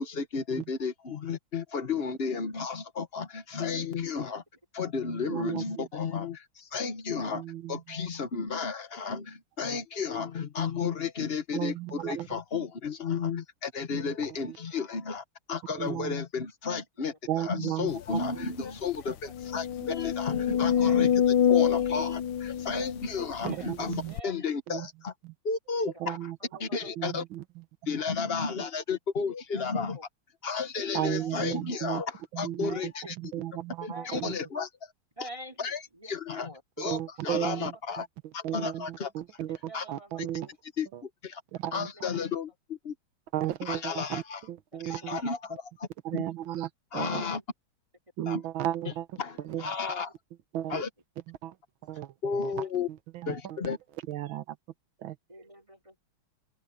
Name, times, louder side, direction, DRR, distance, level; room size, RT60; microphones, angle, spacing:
voice 1, 0.0-4.4 4.7-7.4 7.7-21.2 21.5-25.1 25.4-26.3 26.6-27.2 27.9-30.0 30.4-33.1 33.8-34.7 35.2-35.3 35.6-35.8 36.0-36.5 36.8-38.1 38.3-39.1 39.7-39.8 40.2-40.3 40.8-41.4 41.7-42.9 43.6-44.4 44.8-45.9 46.1-46.2 46.9-47.4 48.3-48.4 48.8-48.9 49.2-50.1 50.7-50.9 52.2-52.9 53.3-53.8, left 5 dB, 35° left, 1.1 m, -33 dB
voice 2, 5.3-5.9 7.3-7.8 11.5-12.3 15.8-16.1 17.3-18.2 23.4-24.1 24.7-24.9 25.2-25.3 26.0-26.4 27.0-27.4 30.9-32.0 32.3-32.9 33.2-34.3 36.8-37.7 38.4-39.6 39.9-40.5 41.6-41.9 43.3-44.2 44.5-45.2 46.1-47.2 48.2-49.1 49.5-49.6 50.5-50.8 51.4-51.5 51.9-52.1 53.4-53.6 54.1-54.4 55.0-55.2, right 12 dB, 75° right, 1.7 m, -34 dB
sound 1, 18.2-18.3 18.6-18.7 19.3-23.5 24.2-24.3, left 9 dB, 70° left, 1.4 m, -26 dB
voice 3, 19.0-19.3 20.6-21.0 21.6-21.8 23.5-23.7 24.1-24.5 25.8-25.9 26.4-27.1 28.5-28.6 29.5-30.0 31.2-31.8 32.6-33.1 33.9-34.5 35.2-36.6 37.2-37.3 37.5-37.8 39.6-40.6 41.8-42.2 44.7-45.3 47.0-47.4 49.5-50.1 50.8-50.9 52.3-52.8 53.6-53.7 55.3-56.0, right 1 dB, 15° right, 3.7 m, -49 dB
open air
omnidirectional pair, 2.3 m